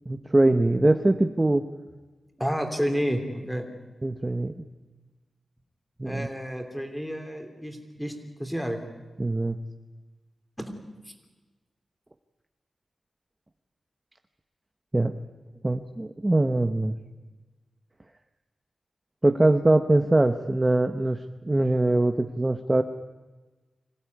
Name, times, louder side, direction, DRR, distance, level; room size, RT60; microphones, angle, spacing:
voice 1, 0.1-1.6 4.0-4.6 6.0-6.3 9.2-9.6 14.9-15.1 15.6-16.9 19.2-22.8, right 2 dB, 15° right, 8 dB, 0.9 m, -22 dB
voice 2, 2.4-3.6 6.0-8.8 10.6-10.7, equal, 5° left, 5 dB, 3.2 m, -30 dB
25.0 x 16.5 x 9.6 m, 1.2 s
wide cardioid pair, 120°, 0 cm